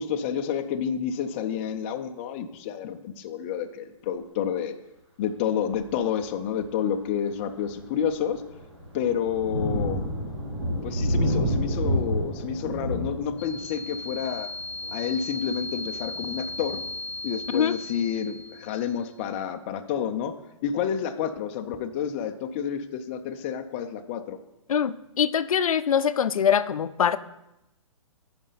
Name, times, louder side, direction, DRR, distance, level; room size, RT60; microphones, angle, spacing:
voice 1, 0.0-4.8 5.2-8.4 8.9-10.1 10.8-14.5 14.9-16.8 17.2-20.3 20.6-24.4, left 8 dB, 20° left, 7 dB, 0.4 m, -29 dB
Thunder, 5.7-6.0 6.6-6.7 7.2-17.7, equal, 55° right, 2.8 m, -31 dB
sound 1, 13.4-19.0, left 2 dB, 55° left, 0.7 m, -37 dB
voice 2, 24.7-27.2, left 8 dB, 90° left, 13 dB, 0.5 m, -23 dB
11.0 x 5.2 x 3.9 m, 0.91 s
hypercardioid pair, 155°, 17 cm